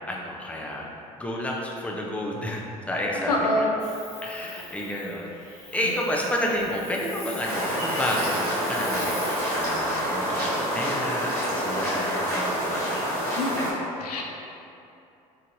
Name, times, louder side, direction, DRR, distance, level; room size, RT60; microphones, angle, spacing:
voice 1, 0.1-0.9 1.2-3.7 4.2-5.4 5.7-13.3, left 1 dB, 5° left, -2 dB, 0.6 m, -30 dB
voice 2, 3.3-3.7 13.4-13.7 14.0-14.2, left 1 dB, 90° left, -1 dB, 0.4 m, -25 dB
Hiss, 3.8-10.1, left 2 dB, 55° left, 1.2 m, -42 dB
sound 1, 7.4-13.7, equal, 80° right, 1.3 m, -27 dB
4.5 x 2.7 x 2.6 m, 2.7 s
hypercardioid pair, 60°, 19 cm